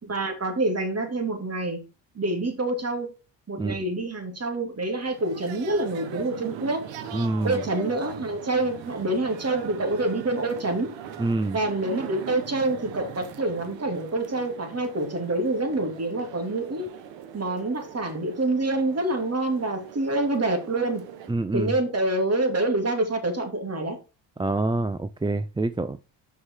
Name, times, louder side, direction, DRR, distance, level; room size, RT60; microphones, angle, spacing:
voice 1, 0.0-1.8 2.1-3.1 3.5-6.8 7.4-10.9 11.5-16.9 17.3-21.0 21.5-24.0, right 2 dB, 35° right, 2.8 m, -26 dB
sound 1, 4.9-21.3, right 8 dB, 85° right, 1.2 m, -41 dB
voice 2, 7.1-7.6 11.2-11.6 21.3-21.7 24.4-26.0, right 2 dB, 10° right, 0.5 m, -26 dB
6.2 x 5.8 x 4.7 m
supercardioid pair, 65°, 44 cm